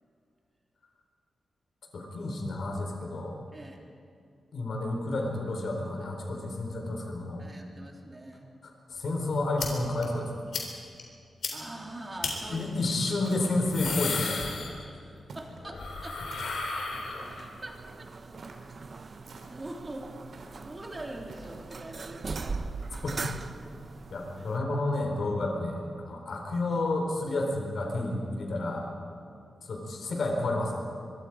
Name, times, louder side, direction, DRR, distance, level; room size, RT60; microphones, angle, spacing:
voice 1, 1.9-3.3 4.5-7.4 8.6-10.3 12.5-14.5 23.0-23.2 24.1-28.9 29.7-30.8, left 2 dB, 60° left, 2 dB, 4.4 m, -30 dB
voice 2, 3.5-3.8 7.4-8.5 11.5-12.7 14.9-16.2 17.4-18.1 19.0-19.2 19.5-20.1 20.5-22.6 24.4-24.5, right 1 dB, 25° right, 0 dB, 3.3 m, -43 dB
sound 1, 9.6-9.7 10.0-10.1 10.5-10.7 11.0-11.1 11.4-11.5 12.2-12.3 13.4-15.1 15.4-17.6, left 4 dB, 80° left, 3.8 m, -34 dB
sound 2, 12.2-12.7 13.2-13.7 14.3-14.7 15.3-15.7 16.3-16.8 18.4-18.7 19.2-19.8 20.3-20.7 21.3-21.7 22.3-22.6, right 3 dB, 75° right, 3.1 m, -49 dB
sound 3, 16.9-24.6, right 4 dB, 45° right, 0.9 m, -40 dB
24.5 x 23.0 x 5.0 m, 2.5 s
wide cardioid pair, 120°, 0 cm